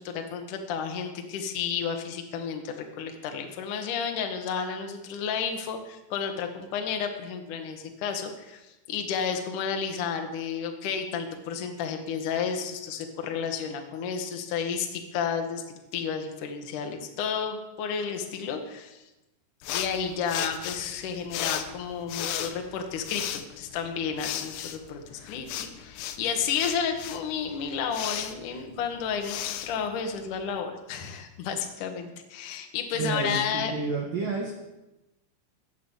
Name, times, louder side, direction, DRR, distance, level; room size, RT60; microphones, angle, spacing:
voice 1, 0.0-15.6 15.9-19.0 19.7-33.7, left 6 dB, 60° left, 4 dB, 2.2 m, -32 dB
sound 1, 19.6-30.6, left 10 dB, 80° left, 2.5 m, -36 dB
voice 2, 32.9-34.5, right 4 dB, 65° right, 0 dB, 2.2 m, -30 dB
17.5 x 7.4 x 7.3 m, 1.0 s
omnidirectional pair, 5.9 m